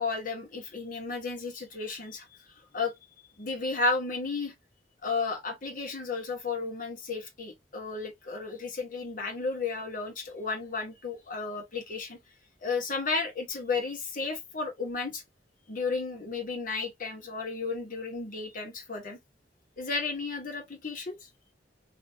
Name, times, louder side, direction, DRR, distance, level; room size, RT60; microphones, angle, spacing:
voice 1, 0.0-2.3 2.7-2.9 3.4-4.5 5.0-12.2 12.6-15.2 15.7-19.2 19.8-21.3, left 4 dB, 50° left, 1.4 m, -33 dB
3.5 x 2.8 x 2.7 m
head